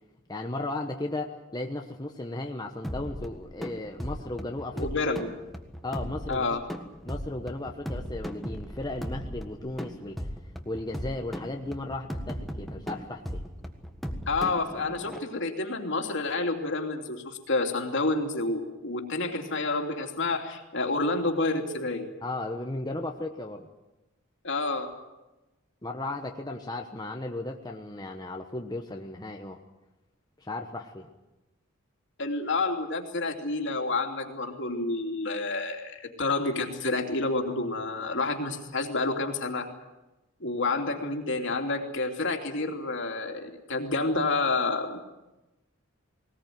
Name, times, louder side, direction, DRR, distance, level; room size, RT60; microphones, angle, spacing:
voice 1, 0.3-4.9 5.8-6.6 7.0-10.3 10.6-13.4 22.2-23.7 25.8-29.6 30.4-31.1, left 2 dB, 20° left, 3 dB, 1.1 m, -35 dB
sound 1, 2.8-15.2, equal, ahead, 1.6 m, -37 dB
voice 2, 4.8-5.3 6.3-6.6 14.3-22.1 24.4-24.9 32.2-39.7 40.4-45.0, left 3 dB, 60° left, 3 dB, 3.0 m, -29 dB
20.0 x 19.5 x 9.3 m, 1.0 s
head